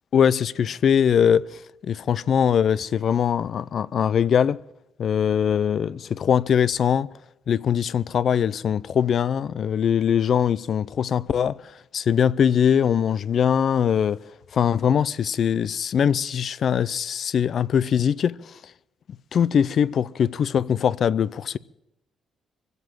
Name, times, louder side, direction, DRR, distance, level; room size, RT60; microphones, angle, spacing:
voice 1, 0.1-4.6 5.0-7.1 7.5-11.6 11.9-14.2 14.5-18.5 19.3-21.6, left 8 dB, 60° left, 0.5 m, -22 dB
24.0 x 8.1 x 7.5 m
cardioid pair, 90°, 0 cm